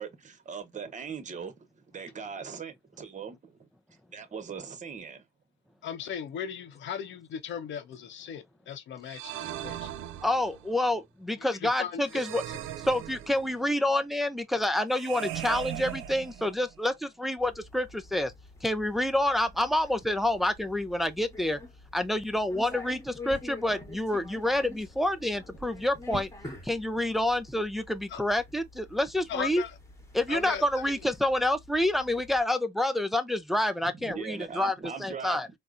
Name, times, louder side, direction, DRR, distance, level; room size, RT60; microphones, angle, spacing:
voice 1, 0.0-3.7 4.1-5.2 34.0-35.4, right 6 dB, 40° right, 0.9 m, -40 dB
voice 2, 5.8-9.9 11.8-12.0 28.1-28.2 29.3-29.7 30.3-30.6, left 8 dB, 70° left, 0.7 m, -37 dB
sound 1, 9.1-10.8 12.1-13.7 14.9-16.8, right 12 dB, 90° right, 0.4 m, -39 dB
voice 3, 10.2-12.4 12.8-18.3 18.6-21.6 21.9-26.3 26.6-29.6 30.1-35.5, left 1 dB, ahead, 0.5 m, -28 dB
sound 2, 17.4-32.4, left 2 dB, 15° left, 1.1 m, -47 dB
4.1 x 2.0 x 2.4 m
cardioid pair, 90°, 20 cm